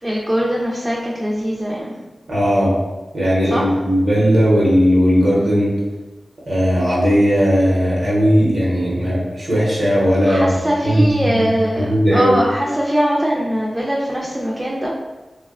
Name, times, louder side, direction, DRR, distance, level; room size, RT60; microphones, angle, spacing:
voice 1, 0.0-1.9 3.5-3.6 10.2-14.9, equal, 20° right, -4 dB, 0.4 m, -21 dB
voice 2, 2.3-2.8 3.1-5.7 6.5-10.6 10.8-11.5 11.9-12.3, equal, 75° right, -6 dB, 0.7 m, -16 dB
2.7 x 2.1 x 2.4 m, 1.1 s
wide cardioid pair, 60°, 0 cm